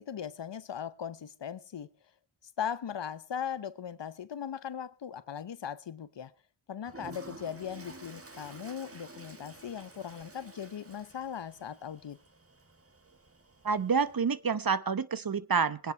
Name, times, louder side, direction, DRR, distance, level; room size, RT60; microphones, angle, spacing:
voice 1, 0.0-1.9 2.4-6.3 6.7-12.2, left 8 dB, 60° left, 0.8 m, -39 dB
Toilet flush, 6.8-14.4, right 2 dB, 25° right, 1.8 m, -51 dB
voice 2, 13.6-15.9, right 5 dB, 45° right, 1.0 m, -28 dB
20.0 x 9.9 x 4.6 m
cardioid pair, 40°, 49 cm